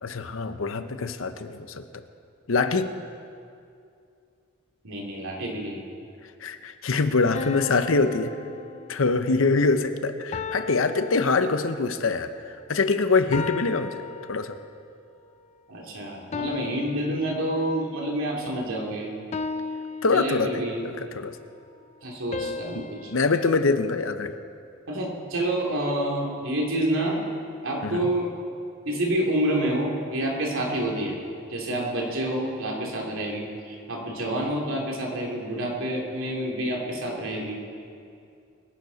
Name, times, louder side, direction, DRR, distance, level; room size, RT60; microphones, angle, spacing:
voice 1, 0.0-2.0 2.5-2.9 6.4-8.3 8.9-12.3 12.7-14.0 14.3-14.6 20.0-21.4 22.7-24.3 27.8-28.1, left 3 dB, 90° left, 10 dB, 0.8 m, -24 dB
voice 2, 4.8-5.8 15.7-19.1 20.1-20.8 22.0-23.1 24.9-27.2 27.6-28.3 28.8-31.2 31.5-37.6, right 1 dB, 85° right, -1 dB, 2.8 m, -28 dB
sound 1, 7.3-9.3 10.3-12.0 13.3-14.9 16.3-18.0 19.3-20.9 22.3-24.7, left 5 dB, 35° left, 0.4 m, -37 dB
23.0 x 10.5 x 4.1 m, 2.5 s
head